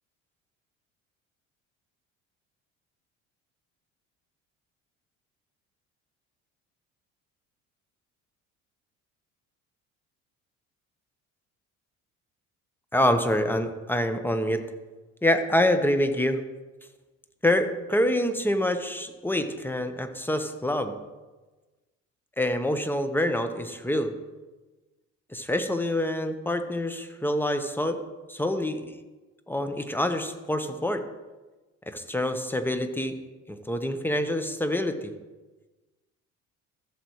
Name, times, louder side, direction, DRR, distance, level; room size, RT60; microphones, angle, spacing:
voice 1, 12.9-14.6 15.2-16.4 17.4-20.9 22.4-24.1 25.3-28.0 28.3-29.0 29.5-31.0 31.9-33.1 33.5-35.1, left 1 dB, 5° left, 8 dB, 1.0 m, -26 dB
14.0 x 7.2 x 3.1 m, 1.2 s
hypercardioid pair, 55°, 40 cm